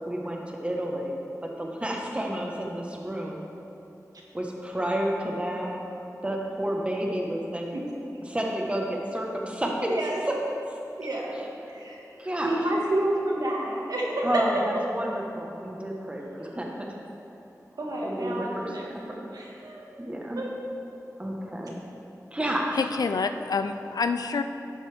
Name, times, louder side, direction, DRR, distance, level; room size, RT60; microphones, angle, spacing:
voice 1, 0.1-1.2 1.4-3.5 4.3-5.8 6.2-7.8 8.3-9.9 10.3-10.4 12.2-12.5 14.2-16.9 18.0-18.8 19.1-19.2 20.0-20.4 21.2-21.8 22.3-22.8, right 1 dB, 20° right, -1 dB, 1.2 m, -30 dB
voice 2, 9.8-10.2 11.0-12.1 12.4-14.4 17.8-18.8 19.3-20.0 20.3-20.5, right 1 dB, 85° right, -3 dB, 1.6 m, -29 dB
voice 3, 22.7-24.4, left 4 dB, 85° left, 8 dB, 0.4 m, -27 dB
11.5 x 8.5 x 3.4 m, 2.8 s
wide cardioid pair, 75°, 6 cm